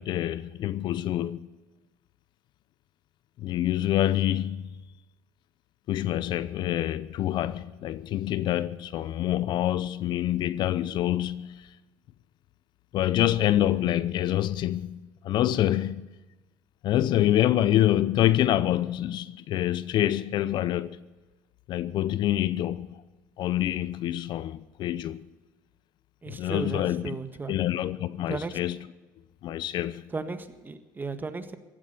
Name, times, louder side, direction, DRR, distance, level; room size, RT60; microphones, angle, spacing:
voice 1, 0.0-1.4 3.4-4.6 5.9-11.7 12.9-16.1 16.8-21.0 21.7-22.9 23.4-25.2 26.3-27.1 27.5-28.8 29.4-30.0, left 12 dB, 60° left, 0.7 m, -26 dB
voice 2, 26.2-27.7 28.3-28.6 30.1-31.6, right 3 dB, 20° right, 1.6 m, -35 dB
16.0 x 13.0 x 6.8 m
supercardioid pair, 90°, 9 cm